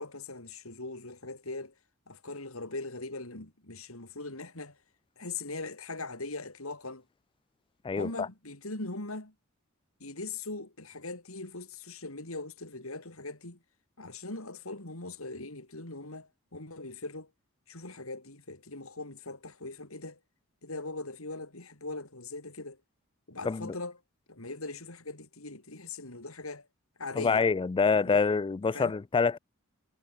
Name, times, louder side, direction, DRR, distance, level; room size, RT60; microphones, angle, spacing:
voice 1, 0.0-1.7 2.1-4.8 5.2-7.0 8.0-9.3 10.0-13.6 14.0-17.3 17.7-20.2 20.6-22.8 23.3-24.0 24.3-26.7 27.0-27.5 27.8-28.2 28.7-28.9, left 3 dB, 75° left, 4.6 m, -40 dB
voice 2, 7.8-8.3 23.5-23.7 27.2-29.4, left 5 dB, 25° left, 0.3 m, -26 dB
head